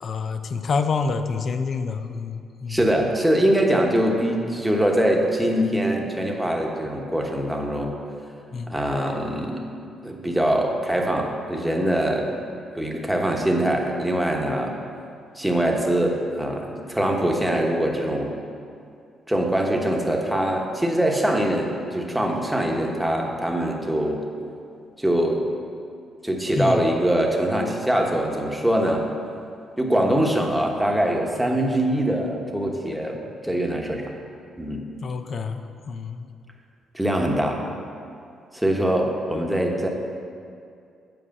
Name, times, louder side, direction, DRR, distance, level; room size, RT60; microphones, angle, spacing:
voice 1, 0.0-2.8 8.5-8.7 26.6-26.8 35.0-36.3, left 4 dB, 50° left, 9 dB, 0.5 m, -27 dB
voice 2, 2.7-8.0 8.7-9.7 10.0-12.3 12.7-14.7 15.3-18.4 19.3-24.2 25.0-25.4 26.2-29.0 29.8-34.0 34.6-34.8 36.9-37.6 38.5-39.9, right 1 dB, 5° right, 1 dB, 1.1 m, -23 dB
7.8 x 4.8 x 7.2 m, 2.4 s
cardioid pair, 90°, 0 cm